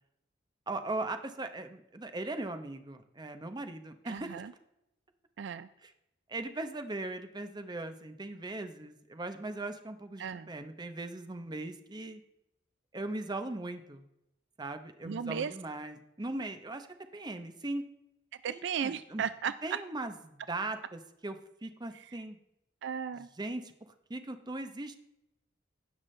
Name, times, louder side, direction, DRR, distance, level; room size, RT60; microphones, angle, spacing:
voice 1, 0.7-4.4 5.8-5.9 6.3-12.2 12.9-14.0 14.6-16.9 17.1-17.8 18.5-19.2 19.6-22.4 23.4-25.0, right 2 dB, 25° right, 8 dB, 0.8 m, -39 dB
voice 2, 4.1-4.5 5.4-5.7 10.2-10.5 15.0-15.5 18.3-19.8 21.9-22.1 22.8-23.3, right 7 dB, 65° right, 14 dB, 0.4 m, -36 dB
16.5 x 5.9 x 3.2 m, 0.85 s
head